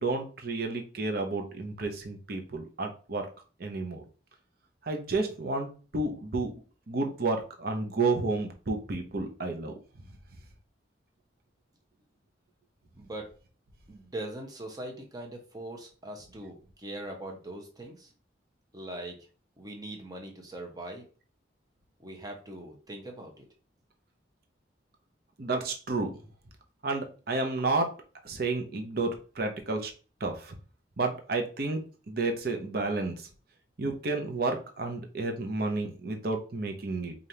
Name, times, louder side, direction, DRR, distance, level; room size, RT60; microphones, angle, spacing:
voice 1, 0.0-3.3 3.6-4.0 4.8-6.6 6.9-9.7 25.4-26.1 26.8-27.9 28.2-29.9 30.2-30.5 31.0-31.8 32.1-33.3 33.8-37.1, right 3 dB, 55° right, 4 dB, 0.8 m, -31 dB
voice 2, 12.9-13.3 13.9-18.1 18.7-19.2 19.6-21.0 22.0-23.4, right 1 dB, 20° right, 2 dB, 0.9 m, -41 dB
5.0 x 2.6 x 2.9 m, 0.37 s
head